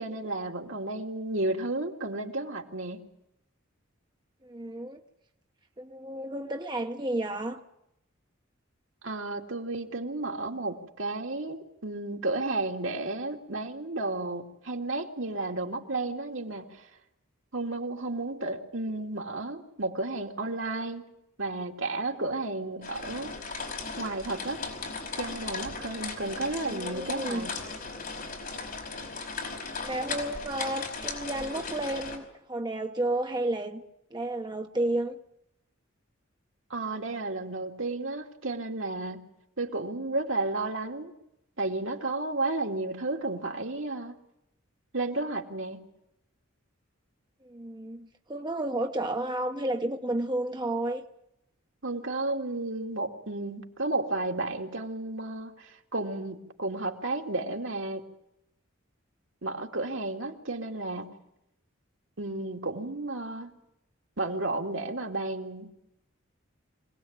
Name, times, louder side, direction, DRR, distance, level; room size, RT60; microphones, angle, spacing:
voice 1, 0.0-3.0 9.0-16.9 17.5-21.0 21.4-23.3 24.0-24.6 25.2-27.5 36.7-39.2 39.6-41.1 41.6-44.1 44.9-45.9 51.8-58.1 59.4-61.1 62.2-63.5 64.2-65.7, right 2 dB, 65° right, 2.6 m, -32 dB
voice 2, 4.4-5.0 5.8-7.6 26.6-27.5 29.8-33.8 34.1-35.2 47.4-51.0, right 1 dB, 20° right, 1.1 m, -32 dB
sound 1, 22.8-32.2, left 4 dB, 45° left, 5.2 m, -37 dB
25.5 x 18.5 x 8.9 m
head